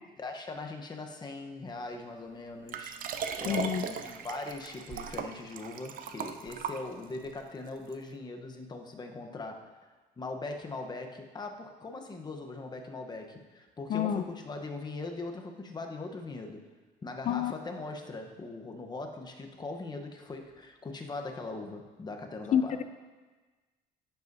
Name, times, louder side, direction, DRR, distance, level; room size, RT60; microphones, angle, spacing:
voice 1, 0.2-16.7 17.0-22.8, left 3 dB, 25° left, 4 dB, 0.9 m, -41 dB
Liquid, 2.7-7.3 7.9-8.0, right 6 dB, 55° right, 0.6 m, -38 dB
voice 2, 3.5-3.9 13.9-14.2 17.3-17.5 22.5-22.8, left 9 dB, 45° left, 10 dB, 0.4 m, -28 dB
10.5 x 8.1 x 2.7 m, 1.3 s
cardioid pair, 110°, 17 cm